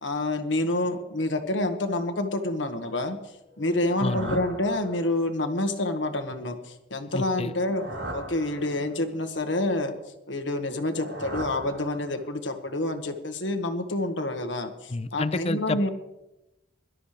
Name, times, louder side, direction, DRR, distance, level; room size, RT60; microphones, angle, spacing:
voice 1, 0.0-3.2 3.6-7.8 8.1-9.9 10.3-15.9, left 2 dB, 85° left, 6 dB, 1.6 m, -28 dB
sound 1, 3.5-5.4 7.3-9.1 10.6-12.4, right 1 dB, 80° right, 4.1 m, -39 dB
voice 2, 4.0-4.4 7.1-7.5 14.9-15.9, left 2 dB, 35° left, 14 dB, 0.6 m, -29 dB
23.5 x 12.5 x 3.4 m, 0.95 s
head